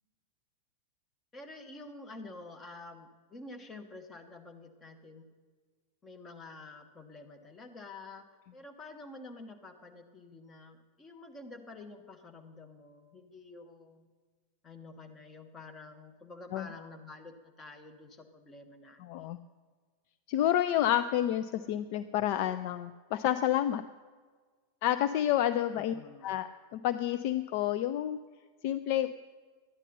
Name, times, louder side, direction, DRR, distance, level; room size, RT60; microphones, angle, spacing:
voice 1, 1.3-5.3 6.0-14.1 14.6-19.3 25.7-26.3, left 3 dB, 20° left, 5 dB, 1.4 m, -49 dB
voice 2, 19.0-19.4 20.3-23.8 24.8-25.9 26.2-28.2 28.6-29.1, left 11 dB, 45° left, 10 dB, 0.4 m, -29 dB
12.5 x 9.8 x 5.5 m, 1.5 s
figure-of-eight pair, 90°, 0 cm